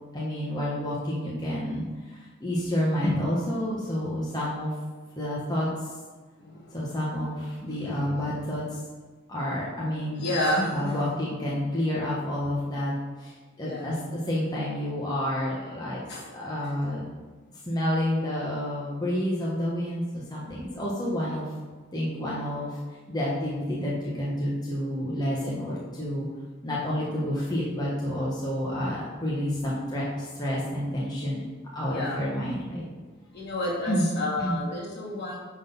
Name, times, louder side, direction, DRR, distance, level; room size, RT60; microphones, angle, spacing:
voice 1, 0.1-4.7 5.1-5.7 6.7-8.6 9.3-10.2 10.7-12.9 13.2-16.0 16.3-17.0 17.6-21.4 21.9-22.8 23.1-26.3 26.6-31.5 31.7-32.8 33.9-34.1 34.4-34.6, equal, 20° left, -6 dB, 1.2 m, -29 dB
voice 2, 6.4-7.0 7.6-8.3 10.2-11.1 13.6-13.9 16.1-16.2 31.9-32.2 33.3-35.4, left 1 dB, 55° left, -5 dB, 2.7 m, -30 dB
10.0 x 4.0 x 5.4 m, 1.4 s
head